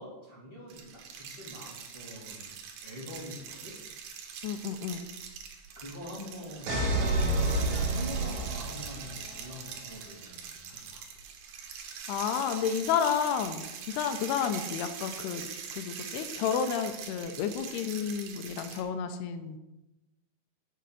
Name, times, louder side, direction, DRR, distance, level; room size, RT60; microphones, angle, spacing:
voice 1, 0.0-2.5 2.8-3.8 5.7-6.8 7.6-11.0, equal, 10° left, -6 dB, 2.1 m, -45 dB
sound 1, 0.7-18.8, right 7 dB, 75° right, 3.0 m, -43 dB
voice 2, 4.4-5.0 12.1-15.5 15.7-19.6, left 7 dB, 90° left, 9 dB, 2.7 m, -31 dB
sound 2, 6.7-9.5, right 2 dB, 60° right, 2.2 m, -29 dB
6.7 x 6.5 x 7.7 m, 0.99 s
omnidirectional pair, 4.7 m